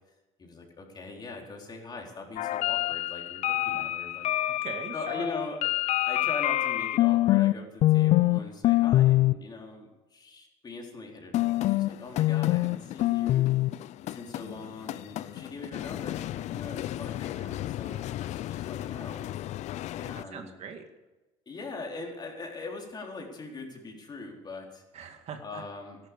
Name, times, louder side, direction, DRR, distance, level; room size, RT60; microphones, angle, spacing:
voice 1, 0.4-4.3 4.9-5.6 6.1-13.5 14.1-19.2 19.9-20.5 21.5-24.8 25.4-26.0, left 3 dB, 30° left, 1 dB, 4.1 m, -41 dB
sound 1, 2.4-7.5 7.8-8.4 8.6-9.3 11.3-20.2, left 16 dB, 60° left, 0.5 m, -26 dB
voice 2, 4.5-5.3 15.6-15.9 20.1-20.8 24.9-25.6, right 6 dB, 55° right, 5 dB, 2.2 m, -42 dB
13.5 x 12.0 x 6.9 m, 1.1 s
supercardioid pair, 95°, 14 cm